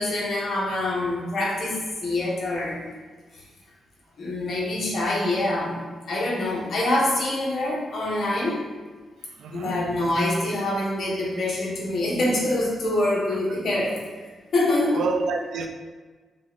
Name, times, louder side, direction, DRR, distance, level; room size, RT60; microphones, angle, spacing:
voice 1, 0.0-2.9 4.2-8.6 9.5-14.0 14.5-15.0, left 1 dB, 60° left, -4 dB, 1.3 m, -25 dB
voice 2, 9.4-9.8 14.9-15.7, right 4 dB, 80° right, 4 dB, 0.5 m, -28 dB
5.4 x 2.5 x 3.6 m, 1.4 s
cardioid pair, 110°, 0 cm